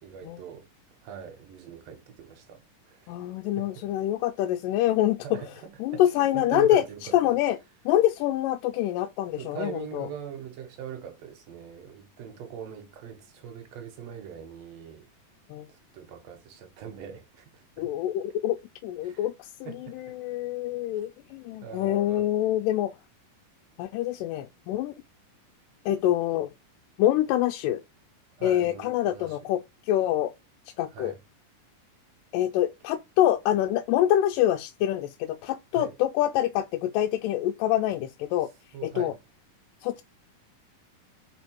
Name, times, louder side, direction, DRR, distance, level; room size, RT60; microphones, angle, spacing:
voice 1, 0.0-0.7 1.0-2.6 2.9-3.1 3.6-3.9 5.2-7.4 9.4-15.1 15.7-17.9 19.0-19.3 19.7-20.0 20.9-21.1 21.6-22.3 28.4-29.6 30.9-31.2 35.7-35.9 38.7-39.2, right 8 dB, 65° right, 1.9 m, -42 dB
voice 2, 3.1-5.4 5.8-6.8 7.1-7.6 7.9-10.1 15.5-15.7 17.8-18.6 18.8-19.5 20.0-22.9 23.8-24.9 25.9-26.5 27.0-27.8 28.4-29.6 29.9-30.3 30.8-31.1 32.3-38.5 38.8-39.1 39.8-40.0, left 12 dB, 85° left, 2.2 m, -25 dB
5.1 x 4.4 x 4.4 m
omnidirectional pair, 3.9 m